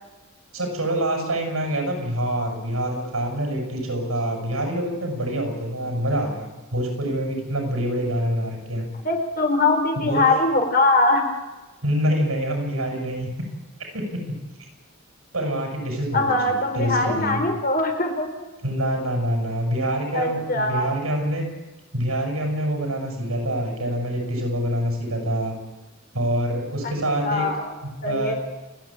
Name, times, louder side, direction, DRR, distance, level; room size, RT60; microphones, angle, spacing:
voice 1, 0.5-8.9 10.0-10.2 11.8-13.3 13.9-14.1 15.3-16.3 16.7-17.4 18.6-21.4 21.9-25.6 26.1-27.5 27.8-28.4, right 1 dB, 85° right, 2 dB, 7.7 m, -26 dB
voice 2, 9.0-11.2 16.1-18.3 20.1-20.9 27.2-27.7 28.0-28.3, left 2 dB, 45° left, 4 dB, 4.0 m, -22 dB
30.0 x 10.5 x 9.0 m, 1.1 s
head